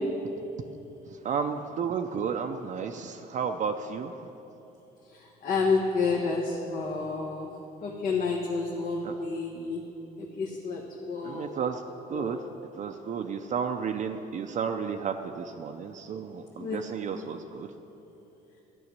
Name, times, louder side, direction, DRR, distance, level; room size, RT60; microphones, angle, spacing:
voice 1, 1.1-4.2 9.0-9.1 11.2-11.8 12.1-12.4 12.8-17.7, right 6 dB, 45° right, 4 dB, 0.6 m, -32 dB
voice 2, 5.1-7.5 7.8-9.8 10.2-11.6 12.1-12.5 16.6-16.8 17.1-17.3, left 4 dB, 60° left, -3 dB, 1.5 m, -30 dB
12.5 x 6.3 x 9.5 m, 3.0 s
cardioid pair, 110°, 17 cm